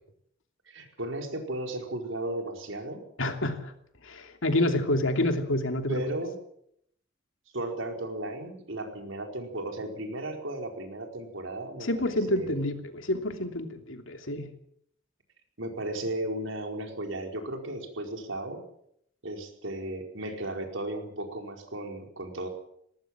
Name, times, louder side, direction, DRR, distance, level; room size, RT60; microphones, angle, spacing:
voice 1, 0.7-3.0 5.9-6.4 7.5-12.5 15.6-18.6 19.2-22.5, right 1 dB, 85° right, 3 dB, 4.7 m, -35 dB
voice 2, 3.2-3.7 4.0-6.0 11.8-14.5, left 1 dB, 90° left, 5 dB, 2.9 m, -28 dB
20.0 x 18.5 x 7.6 m, 0.70 s
head